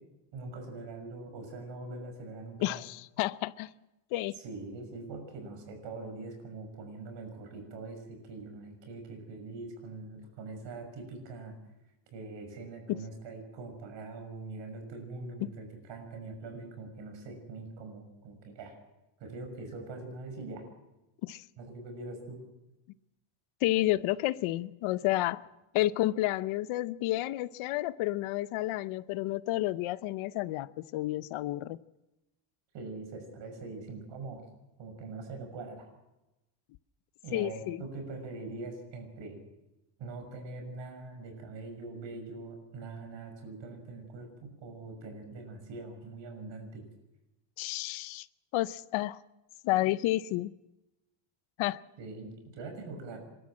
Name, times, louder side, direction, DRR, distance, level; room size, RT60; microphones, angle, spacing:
voice 1, 0.3-2.8 4.3-11.5 12.1-18.8 19.2-20.7 21.6-22.4 32.7-34.4 34.8-35.9 37.2-39.4 40.0-46.8 52.0-53.2, right 3 dB, 60° right, 6.3 m, -43 dB
voice 2, 2.6-3.7 4.1-4.4 12.9-13.0 21.2-21.4 23.6-25.4 25.7-31.8 37.3-37.8 47.6-48.3 48.5-49.2 49.6-50.5 51.6-51.8, left 16 dB, 70° left, 0.8 m, -30 dB
28.0 x 13.0 x 7.6 m
cardioid pair, 160°, 50 cm